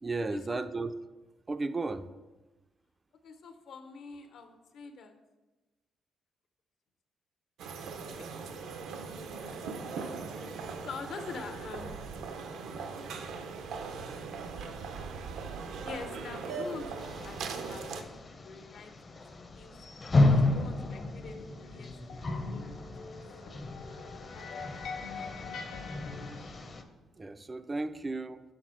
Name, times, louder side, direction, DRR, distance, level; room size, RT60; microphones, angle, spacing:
voice 1, 0.0-0.9 1.5-2.1 27.2-28.4, right 3 dB, 25° right, 11 dB, 0.3 m, -34 dB
voice 2, 3.2-5.1 8.2-8.3 8.5-9.6 9.9-10.1 10.8-12.0 15.8-18.1 18.4-19.8 20.3-22.8 23.0-23.2 24.3-24.5, left 5 dB, 70° left, 6 dB, 0.8 m, -46 dB
sound 1, 7.6-18.0, right 4 dB, 80° right, 0.6 m, -40 dB
sound 2, 17.0-26.8, left 2 dB, 35° left, 0.7 m, -32 dB
sound 3, 21.2-26.7, left 4 dB, 90° left, 1.2 m, -44 dB
6.5 x 3.7 x 6.1 m, 1.1 s
cardioid pair, 90°, 0 cm